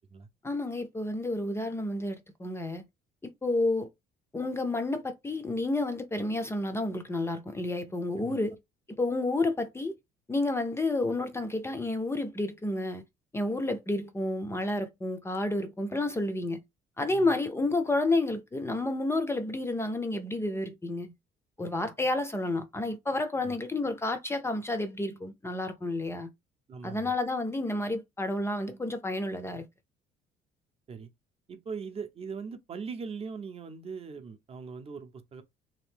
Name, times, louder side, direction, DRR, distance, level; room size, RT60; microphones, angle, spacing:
voice 1, 0.4-2.8 3.2-3.9 4.3-8.6 9.0-9.9 10.3-13.0 13.3-16.6 17.0-21.1 21.6-26.3 26.8-29.7, left 2 dB, 15° left, 0.5 m, -30 dB
voice 2, 26.7-27.1 30.9-31.1 31.5-35.4, right 5 dB, 35° right, 0.6 m, -40 dB
2.8 x 2.5 x 3.4 m
cardioid pair, 110°, 17 cm